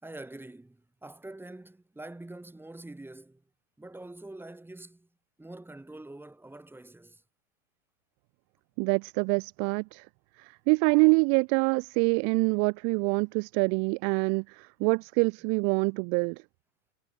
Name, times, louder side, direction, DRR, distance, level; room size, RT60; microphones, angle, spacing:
voice 1, 0.0-3.4 3.8-5.1 5.4-7.2 14.8-14.9, right 2 dB, 5° right, 3.4 m, -45 dB
voice 2, 8.8-10.1 10.4-16.4, right 40 dB or more, 35° right, 0.5 m, -25 dB
hypercardioid pair, 100°, 44 cm